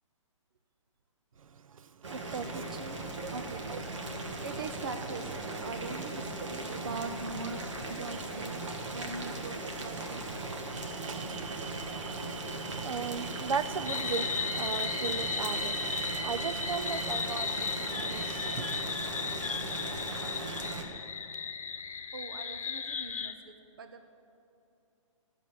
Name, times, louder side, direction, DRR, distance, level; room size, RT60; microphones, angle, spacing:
voice 1, 1.4-2.6 3.2-3.4 3.7-3.8 4.1-4.4 8.2-8.3 9.2-9.3 10.7-18.8, right 6 dB, 80° right, 14 dB, 0.6 m, -37 dB
Boiling, 2.0-20.8, right 2 dB, 60° right, 1.6 m, -38 dB
voice 2, 2.2-3.6 4.2-7.6 7.9-10.2 22.1-24.1, right 4 dB, 45° right, 8 dB, 0.6 m, -42 dB
sound 1, 13.8-23.3, left 6 dB, 90° left, 0.9 m, -36 dB
13.0 x 7.0 x 7.9 m, 2.6 s
hypercardioid pair, 180°, 17 cm